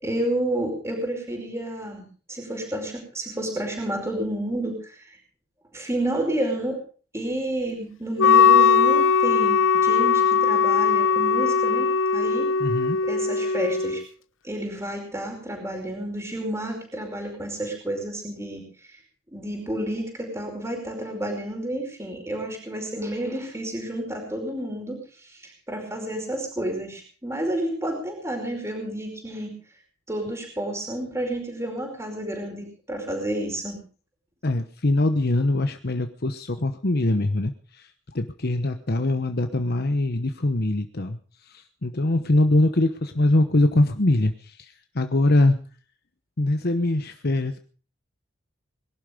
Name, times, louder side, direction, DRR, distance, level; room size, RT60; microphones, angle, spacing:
voice 1, 0.0-5.2 5.7-6.8 7.1-12.5 13.1-14.0 14.4-19.0 19.3-29.5 30.1-33.8, right 1 dB, 15° right, 2 dB, 4.9 m, -30 dB
Wind instrument woodwind instrument, 8.2-14.0, left 6 dB, 80° left, 1.0 m, -19 dB
voice 2, 12.6-13.0 34.4-41.2 41.4-45.6 46.4-47.6, left 2 dB, 55° left, 8 dB, 1.1 m, -23 dB
22.0 x 12.0 x 5.2 m, 0.40 s
head